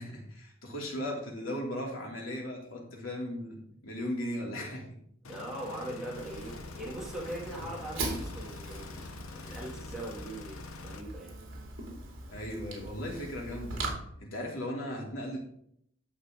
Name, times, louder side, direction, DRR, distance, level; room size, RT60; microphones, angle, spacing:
voice 1, 0.0-4.9 7.5-7.7 12.3-13.8 14.2-15.4, left 1 dB, 75° left, -2 dB, 3.0 m, -37 dB
sound 1, 5.2-11.0, left 4 dB, 90° left, 0.9 m, -46 dB
voice 2, 5.3-9.0 9.3-10.6 10.8-11.3, right 1 dB, ahead, -6 dB, 2.4 m, -40 dB
Fire, 6.1-13.9, right 2 dB, 70° right, 2.9 m, -41 dB
11.0 x 6.6 x 3.7 m, 0.70 s
head